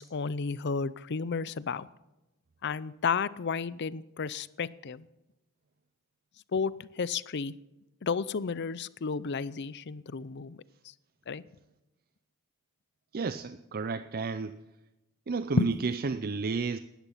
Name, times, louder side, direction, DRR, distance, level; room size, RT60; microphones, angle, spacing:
voice 1, 0.0-1.9 2.6-5.1 6.5-7.5 8.0-10.6 11.3-11.4 15.6-15.8, left 5 dB, 50° left, 19 dB, 0.5 m, -32 dB
voice 2, 13.1-14.6 15.3-16.8, right 4 dB, 45° right, 12 dB, 0.5 m, -32 dB
18.0 x 13.0 x 5.7 m, 0.99 s
head